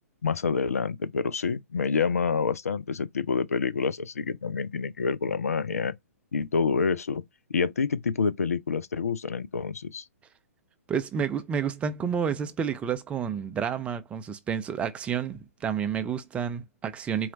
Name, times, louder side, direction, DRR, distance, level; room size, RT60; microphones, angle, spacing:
voice 1, 0.2-6.0 6.3-7.2 7.5-10.0, left 5 dB, 75° left, 0.5 m, -27 dB
voice 2, 10.9-17.3, right 7 dB, 15° right, 0.5 m, -30 dB
4.3 x 2.4 x 4.0 m
figure-of-eight pair, 120°, 8 cm